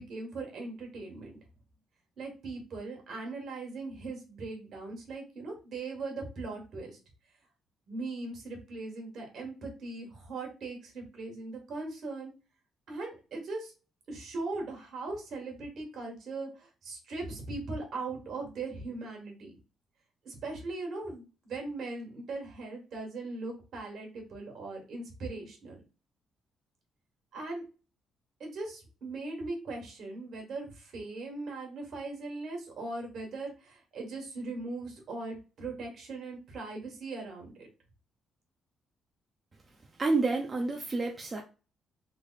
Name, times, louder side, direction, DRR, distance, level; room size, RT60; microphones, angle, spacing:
voice 1, 0.0-1.4 2.2-7.0 7.9-12.3 12.9-13.7 14.1-19.5 20.2-25.8 27.3-27.6 28.4-37.7, right 3 dB, 65° right, 1.5 m, -39 dB
voice 2, 40.0-41.4, right 3 dB, 30° right, 0.5 m, -29 dB
3.3 x 2.1 x 3.9 m
cardioid pair, 90°, 0 cm